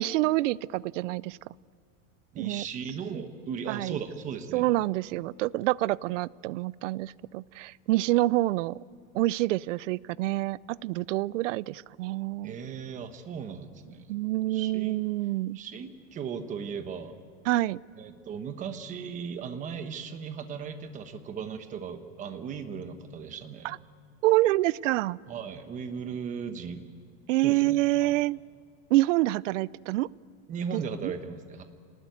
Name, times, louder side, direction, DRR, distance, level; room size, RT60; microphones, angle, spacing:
voice 1, 0.0-1.4 2.4-2.7 3.7-4.0 4.5-8.8 9.1-12.5 14.1-15.6 17.5-17.8 23.6-23.8 24.2-25.2 27.3-28.4 28.9-30.1 30.7-31.1, right 17 dB, 65° right, 22 dB, 0.6 m, -27 dB
voice 2, 2.3-4.7 12.4-14.1 14.5-15.0 15.5-17.2 18.0-23.8 25.3-26.9 27.4-28.2 30.5-31.7, right 6 dB, 20° right, 8 dB, 1.2 m, -37 dB
27.5 x 19.5 x 9.2 m, 2.1 s
supercardioid pair, 175°, 40 cm